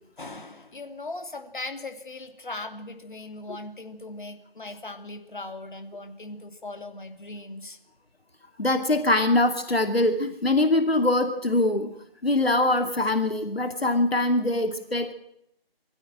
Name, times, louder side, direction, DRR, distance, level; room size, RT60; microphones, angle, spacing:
voice 1, 0.2-7.8, left 2 dB, 55° left, 6 dB, 3.0 m, -39 dB
voice 2, 8.6-11.9 12.2-15.1, left 2 dB, 75° left, 7 dB, 2.7 m, -23 dB
23.0 x 16.0 x 7.5 m, 0.73 s
figure-of-eight pair, 160°, 30 cm